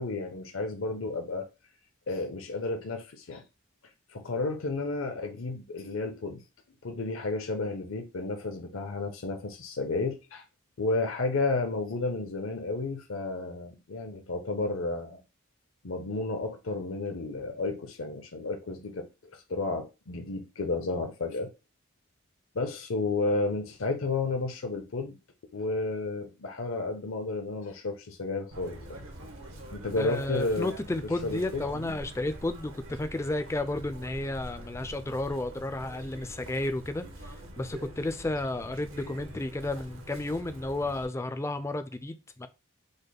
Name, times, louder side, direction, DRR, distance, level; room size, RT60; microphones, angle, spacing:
voice 1, 0.0-1.5 2.1-3.4 4.1-6.4 6.8-10.4 10.8-15.2 15.8-19.1 19.3-21.5 22.5-25.2 25.5-29.0 29.7-30.7 31.2-32.0, left 3 dB, 80° left, 0.7 m, -32 dB
Chirp tweet, 28.5-41.1, right 1 dB, 80° right, 1.1 m, -45 dB
voice 2, 30.0-42.5, left 2 dB, 15° left, 0.3 m, -32 dB
5.2 x 2.1 x 4.0 m
head